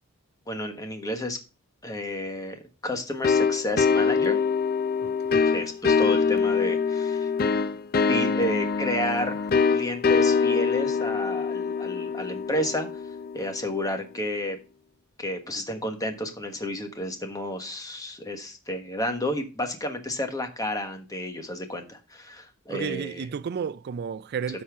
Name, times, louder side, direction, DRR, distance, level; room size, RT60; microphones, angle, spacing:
voice 1, 0.5-1.4 1.8-4.4 5.4-7.3 8.1-12.9 13.3-14.6 15.2-23.3, left 1 dB, 20° left, 1.3 m, -31 dB
sound 1, 3.2-13.7, left 5 dB, 45° left, 0.5 m, -24 dB
voice 2, 5.0-5.4 22.7-24.6, right 6 dB, 50° right, 0.3 m, -32 dB
13.0 x 4.3 x 3.5 m
head